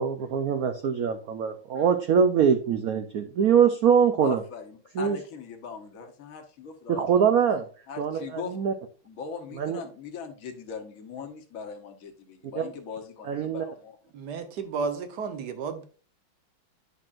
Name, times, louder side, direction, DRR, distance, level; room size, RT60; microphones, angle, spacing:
voice 1, 0.0-4.4 4.9-5.2 6.9-7.7 8.0-8.7 9.5-9.8 12.6-12.7 13.2-13.6, right 7 dB, 80° right, 0.8 m, -23 dB
voice 2, 4.2-7.1 7.4-7.5 7.9-8.6 9.1-13.9, left 6 dB, 50° left, 1.3 m, -40 dB
voice 3, 14.1-15.8, right 5 dB, 60° right, 1.5 m, -32 dB
9.9 x 6.0 x 2.5 m
omnidirectional pair, 2.3 m